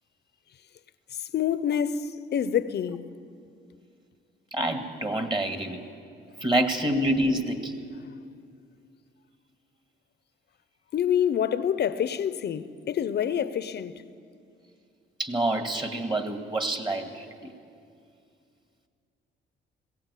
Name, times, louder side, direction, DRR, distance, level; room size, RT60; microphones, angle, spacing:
voice 1, 1.2-3.1 10.9-14.0, left 9 dB, 55° left, 0.7 m, -27 dB
voice 2, 4.5-5.8 6.4-7.8 15.2-17.5, right 1 dB, 25° right, 2.0 m, -27 dB
21.0 x 16.5 x 8.3 m
cardioid pair, 90°, 20 cm